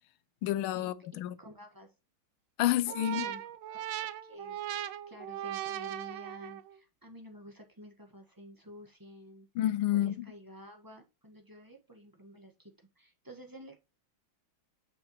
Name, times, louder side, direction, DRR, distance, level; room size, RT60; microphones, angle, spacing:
voice 1, 0.4-1.4 2.6-3.2 9.5-10.3, left 13 dB, 85° left, 1.4 m, -29 dB
voice 2, 1.4-1.9 2.6-4.6 5.1-9.5 9.9-13.8, equal, 10° right, 1.2 m, -51 dB
sound 1, 2.9-6.8, right 12 dB, 80° right, 1.4 m, -38 dB
7.1 x 5.8 x 3.0 m
omnidirectional pair, 2.2 m